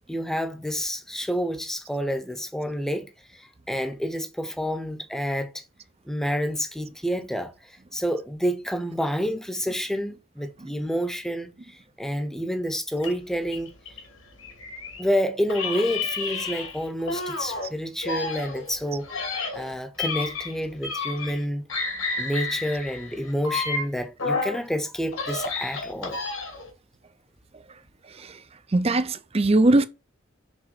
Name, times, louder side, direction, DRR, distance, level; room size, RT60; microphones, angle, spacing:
voice 1, 0.1-5.6 6.1-13.7 15.0-21.6 22.1-26.2, equal, ahead, 0.8 m, -29 dB
sound 1, 13.0-15.1 15.5-17.7 18.0-21.4 21.7-24.6 25.0-26.7, left 4 dB, 80° left, 2.7 m, -31 dB
voice 2, 28.7-29.9, right 2 dB, 30° right, 0.6 m, -19 dB
6.3 x 3.9 x 6.0 m
head